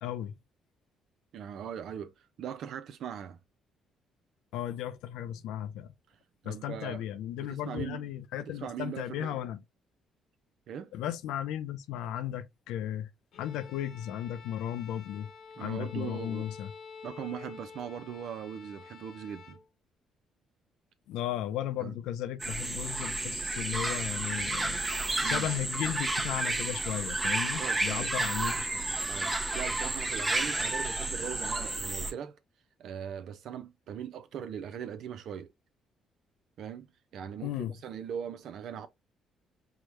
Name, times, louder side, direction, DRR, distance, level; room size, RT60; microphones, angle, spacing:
voice 1, 0.0-0.3 4.5-5.9 6.4-9.6 10.9-13.1 13.4-15.3 15.6-16.7 21.1-24.8 25.2-28.7 37.4-37.7, left 11 dB, 80° left, 0.4 m, -35 dB
voice 2, 1.3-3.4 6.4-7.0 7.4-8.1 8.4-9.4 10.7-10.9 15.6-16.5 17.0-19.6 21.8-22.0 25.2-25.5 27.3-28.1 29.1-32.4 32.8-35.5 36.6-36.9 37.1-38.9, right 8 dB, 70° right, 0.4 m, -40 dB
Bowed string instrument, 13.3-19.7, left 6 dB, 65° left, 1.0 m, -49 dB
sound 1, 22.4-32.1, right 2 dB, 15° right, 0.7 m, -31 dB
4.8 x 2.1 x 2.8 m
supercardioid pair, 75°, 0 cm